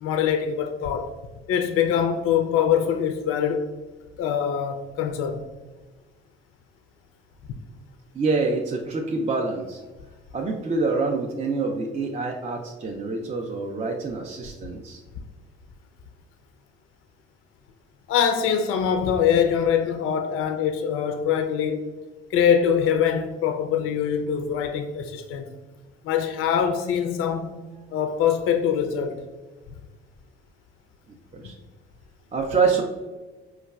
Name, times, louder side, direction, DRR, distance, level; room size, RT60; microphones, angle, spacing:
voice 1, 0.0-1.1 1.5-3.7 4.2-5.4 18.1-21.9 22.3-25.5 26.0-27.6 27.9-29.2, left 8 dB, 45° left, 0.4 m, -23 dB
voice 2, 8.1-9.8 10.3-15.0 31.1-31.6 32.3-32.8, right 4 dB, 25° right, 0.4 m, -26 dB
4.5 x 2.3 x 2.3 m
hypercardioid pair, 45°, 30 cm